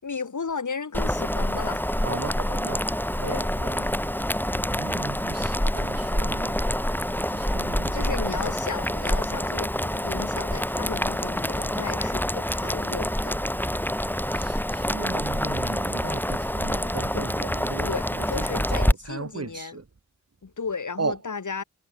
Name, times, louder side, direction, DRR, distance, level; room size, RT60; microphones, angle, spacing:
voice 1, 0.0-1.9 3.2-3.5 7.9-13.4 17.1-17.2 17.8-19.8 20.4-21.6, left 5 dB, 65° left, 7.8 m, -34 dB
Boiling, 0.9-18.9, equal, 5° left, 6.4 m, -27 dB
voice 2, 2.0-2.9 3.2-3.9 4.4-6.6 7.3-8.4 14.3-19.8 21.0-21.2, right 4 dB, 50° right, 3.5 m, -36 dB
cardioid pair, 55°, 32 cm